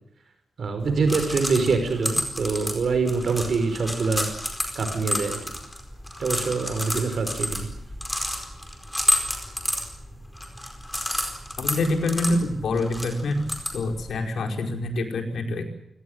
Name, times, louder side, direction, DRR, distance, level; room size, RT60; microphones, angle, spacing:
voice 1, 0.6-4.3 4.7-5.4 6.2-7.7, right 4 dB, 55° right, 8 dB, 4.9 m, -24 dB
sound 1, 0.8-14.1, left 1 dB, 5° left, 4.7 m, -30 dB
voice 2, 11.6-13.4 13.7-15.6, left 2 dB, 85° left, 3 dB, 5.0 m, -26 dB
28.5 x 18.5 x 8.0 m, 0.76 s
wide cardioid pair, 170°, 0 cm